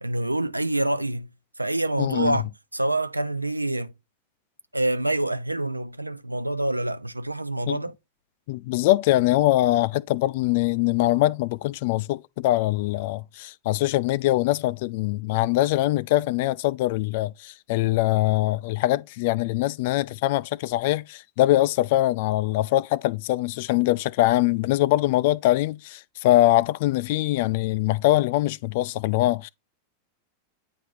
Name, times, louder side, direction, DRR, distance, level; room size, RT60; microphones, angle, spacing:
voice 1, 0.0-1.3 1.6-3.9 4.7-7.9, right 1 dB, 85° right, 0.4 m, -26 dB
voice 2, 2.0-2.4 7.7-7.8 8.5-29.5, left 16 dB, 50° left, 0.3 m, -23 dB
9.3 x 3.5 x 3.0 m
figure-of-eight pair, 90°, 0 cm